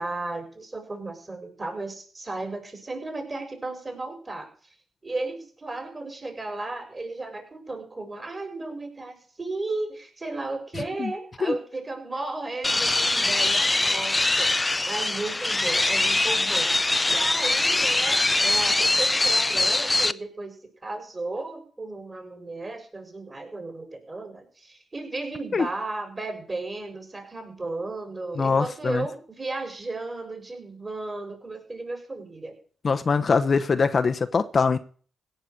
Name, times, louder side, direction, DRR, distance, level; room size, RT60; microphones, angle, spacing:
voice 1, 0.0-4.5 5.0-16.7 17.1-20.5 20.8-32.6, right 2 dB, 35° right, 6 dB, 5.5 m, -34 dB
sound 1, 12.6-20.1, left 2 dB, 25° left, 0.6 m, -23 dB
voice 2, 28.4-29.1 32.8-34.8, left 5 dB, 50° left, 9 dB, 1.0 m, -23 dB
17.0 x 5.8 x 8.1 m, 0.43 s
supercardioid pair, 45°, 0 cm